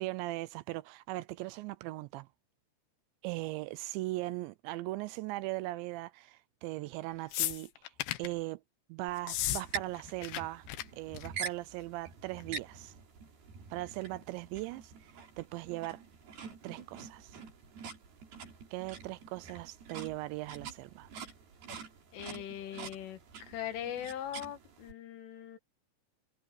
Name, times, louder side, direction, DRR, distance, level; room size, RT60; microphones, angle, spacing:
voice 1, 0.0-2.3 3.2-8.6 8.9-10.7 11.0-13.0 13.7-16.0 16.6-17.4 18.7-21.1, right 18 dB, 80° right, 2.7 m, -39 dB
sound 1, 7.3-8.3 9.2-9.6 9.9-10.4 10.7-10.8 11.1-11.5 12.4-12.5, left 14 dB, 70° left, 3.0 m, -34 dB
sound 2, 9.1-24.9, right 5 dB, 55° right, 5.9 m, -46 dB
voice 2, 22.1-25.6, left 10 dB, 85° left, 4.6 m, -41 dB
omnidirectional pair, 5.5 m